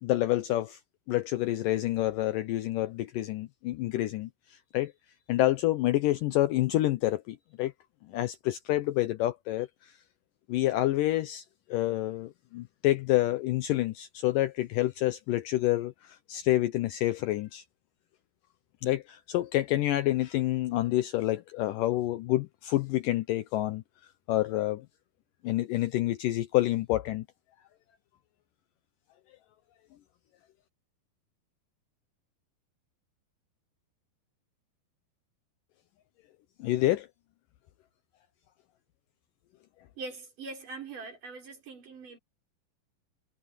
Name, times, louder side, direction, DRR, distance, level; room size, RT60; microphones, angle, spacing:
voice 1, 0.0-0.8 1.1-4.9 5.3-7.7 8.1-9.9 10.5-11.4 11.7-17.6 18.8-23.8 24.3-24.9 25.4-27.3 36.6-37.1, left 15 dB, 75° left, 2.1 m, -28 dB
voice 2, 40.0-42.2, right 3 dB, 55° right, 6.7 m, -42 dB
omnidirectional pair, 4.4 m